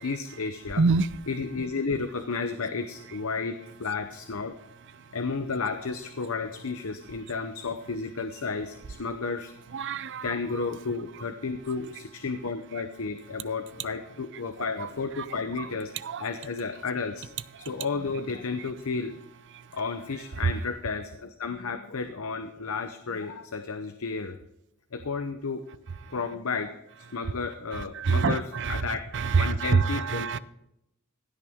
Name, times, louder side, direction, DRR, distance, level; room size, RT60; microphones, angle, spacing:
voice 1, 0.0-0.8 1.3-4.5 5.1-9.5 9.9-15.9 16.2-17.3 17.6-19.2 19.7-24.4 24.9-25.6 26.1-26.7 27.1-29.0 29.3-30.3, left 4 dB, 65° left, 8 dB, 0.8 m, -32 dB
voice 2, 0.8-1.1 9.7-10.3 14.8-14.9 15.6-15.7 16.0-16.2 17.6-17.7 19.5-19.7 27.7-28.9 29.1-30.4, right 4 dB, 55° right, 16 dB, 0.5 m, -26 dB
16.0 x 9.0 x 3.6 m, 0.81 s
head